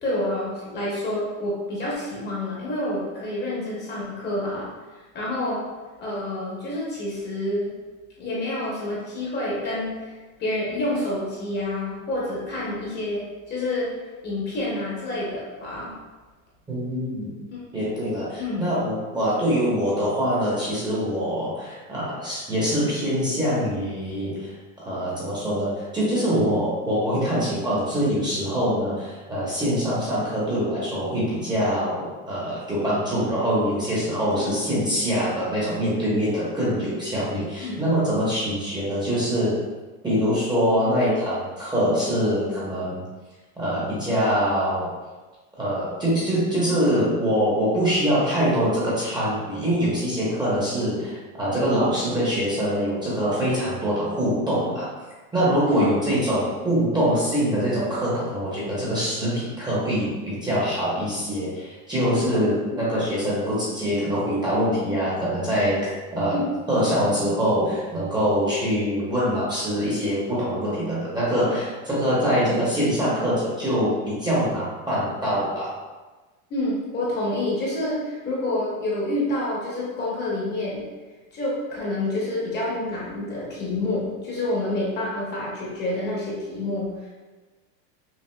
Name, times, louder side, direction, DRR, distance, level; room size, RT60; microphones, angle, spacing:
voice 1, 0.0-4.7 5.1-5.6 6.0-7.8 8.2-13.9 14.2-15.9 17.5-17.9 18.4-18.7 34.4-34.5 37.6-37.8 55.7-55.9 66.3-66.4 72.4-72.6 76.5-80.9 81.3-86.9, left 1 dB, 25° left, -5 dB, 0.8 m, -28 dB
voice 2, 16.7-17.4 17.7-39.6 40.0-43.0 43.6-44.9 45.6-54.9 55.3-65.8 66.1-66.4 66.7-75.7, equal, 10° right, -8 dB, 0.8 m, -24 dB
5.7 x 2.4 x 2.2 m, 1.3 s
supercardioid pair, 155°, 41 cm